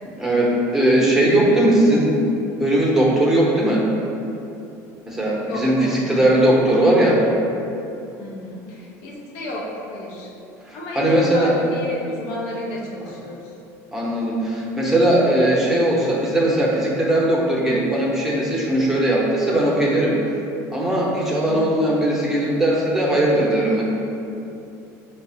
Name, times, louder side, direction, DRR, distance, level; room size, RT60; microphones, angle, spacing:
voice 1, 0.2-2.1 2.6-3.8 5.1-7.2 10.7-11.5 13.9-20.2 20.7-23.8, right 1 dB, 5° right, -4 dB, 0.8 m, -19 dB
voice 2, 5.4-6.4 8.2-10.3 10.7-13.5 21.5-22.0, left 1 dB, 70° left, -3 dB, 0.7 m, -32 dB
5.2 x 2.1 x 2.7 m, 2.8 s
supercardioid pair, 100°, 9 cm